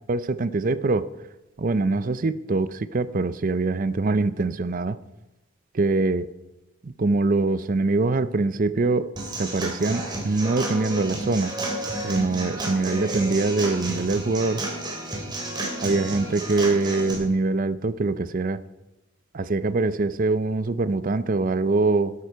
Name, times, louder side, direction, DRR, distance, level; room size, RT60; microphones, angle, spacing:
voice 1, 0.1-1.1 1.6-5.0 5.7-6.3 6.8-9.1 9.4-11.6 12.0-14.6 15.8-18.6 19.3-22.1, right 3 dB, 40° right, 14 dB, 0.5 m, -23 dB
Human voice / Acoustic guitar / Drum, 9.2-17.1, right 1 dB, 20° right, 2.9 m, -31 dB
13.0 x 11.5 x 4.7 m, 1.0 s
head